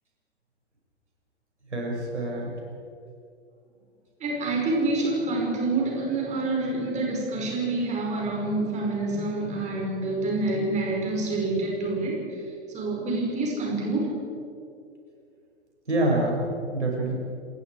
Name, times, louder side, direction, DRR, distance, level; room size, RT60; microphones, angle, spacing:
voice 1, 1.7-2.5 15.9-16.4 16.7-17.1, right 2 dB, 80° right, -1 dB, 6.5 m, -26 dB
voice 2, 4.2-12.2 12.7-14.2, right 2 dB, 20° right, -1 dB, 5.4 m, -27 dB
27.5 x 21.5 x 4.9 m, 2.4 s
figure-of-eight pair, 105°, 34 cm